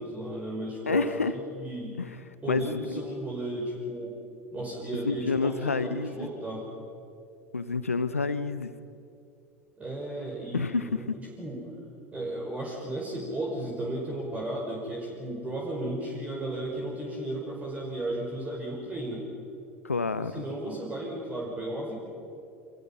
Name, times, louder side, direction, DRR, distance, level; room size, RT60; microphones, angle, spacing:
voice 1, 0.0-1.1 1.6-2.0 2.4-4.2 4.5-6.7 9.8-11.6 12.1-19.3 20.2-21.9, right 1 dB, 20° right, -2 dB, 5.4 m, -34 dB
voice 2, 0.9-1.3 2.0-2.1 2.5-2.8 5.0-6.3 7.5-8.7 10.5-11.2 19.8-20.3, left 4 dB, 80° left, 13 dB, 1.1 m, -28 dB
30.0 x 26.5 x 5.9 m, 2.5 s
figure-of-eight pair, 75°, 7 cm